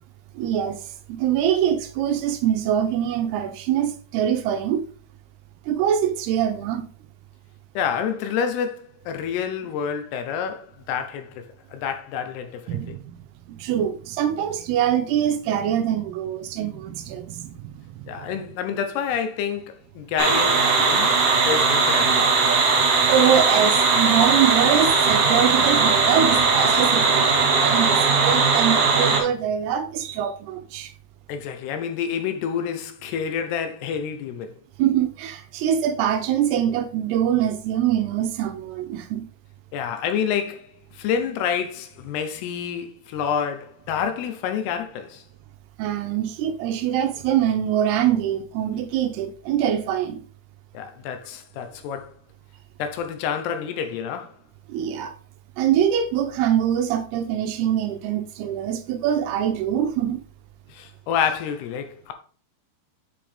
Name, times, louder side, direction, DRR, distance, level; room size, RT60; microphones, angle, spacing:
voice 1, 0.3-0.8 1.1-4.8 5.7-6.9 12.7-13.2 13.5-18.1 22.5-30.9 34.8-39.2 45.8-50.2 54.7-55.1 55.6-60.2, right 9 dB, 80° right, 2.7 m, -24 dB
voice 2, 7.8-13.0 18.1-21.2 21.5-22.3 31.3-34.5 39.7-40.7 40.9-45.2 50.7-52.1 52.8-54.3 60.7-62.1, left 7 dB, 80° left, 2.9 m, -28 dB
sound 1, 20.2-29.2, right 4 dB, 60° right, 3.0 m, -19 dB
7.6 x 5.0 x 3.4 m
omnidirectional pair, 4.7 m